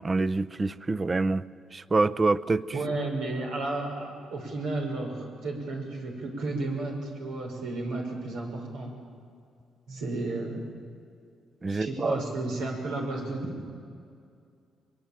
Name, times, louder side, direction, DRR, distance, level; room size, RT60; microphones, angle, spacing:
voice 1, 0.0-1.4 1.7-2.6 11.6-12.2, right 3 dB, 30° right, 15 dB, 0.7 m, -26 dB
voice 2, 2.7-8.9 9.9-10.7 11.7-13.7, right 2 dB, 90° right, 0 dB, 6.1 m, -32 dB
23.5 x 22.5 x 9.1 m, 2.4 s
cardioid pair, 90°, 0 cm